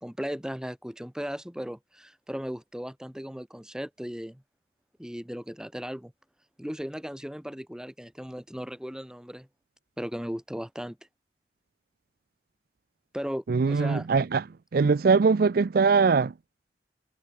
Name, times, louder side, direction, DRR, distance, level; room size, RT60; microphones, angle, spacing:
voice 1, 0.0-4.4 5.0-6.1 6.6-9.5 10.0-11.0 13.1-14.1, equal, 5° right, 1.2 m, -36 dB
voice 2, 13.5-14.4 14.7-16.3, right 4 dB, 55° right, 0.4 m, -21 dB
head